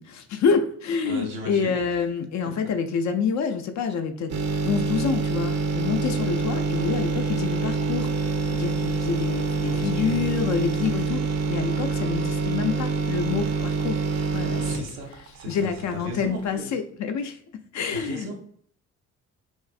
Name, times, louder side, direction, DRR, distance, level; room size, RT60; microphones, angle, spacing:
voice 1, 0.0-4.4 4.6-14.0 14.3-15.0 15.5-17.4 17.7-18.3, left 6 dB, 45° left, 7 dB, 0.5 m, -27 dB
voice 2, 1.1-1.9 9.7-10.3 14.6-16.8 17.9-18.4, right 1 dB, 80° right, 2 dB, 0.7 m, -37 dB
sound 1, 4.3-15.9 16.3-16.4, right 4 dB, 40° right, 0.6 m, -26 dB
3.0 x 2.5 x 2.4 m, 0.64 s
hypercardioid pair, 45°, 41 cm